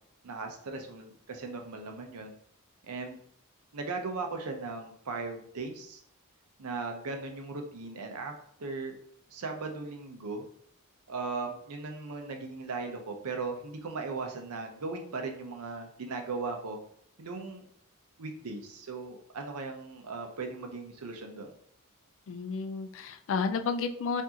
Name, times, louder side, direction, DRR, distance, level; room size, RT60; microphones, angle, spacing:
voice 1, 0.2-2.3 2.8-3.2 3.7-6.0 6.6-8.3 8.6-8.9 9.3-10.4 11.1-16.8 17.2-17.7 18.2-21.5, right 3 dB, 75° right, 4 dB, 0.7 m, -38 dB
voice 2, 22.3-24.2, left 5 dB, 60° left, 8 dB, 0.4 m, -31 dB
4.6 x 2.6 x 2.8 m, 0.66 s
head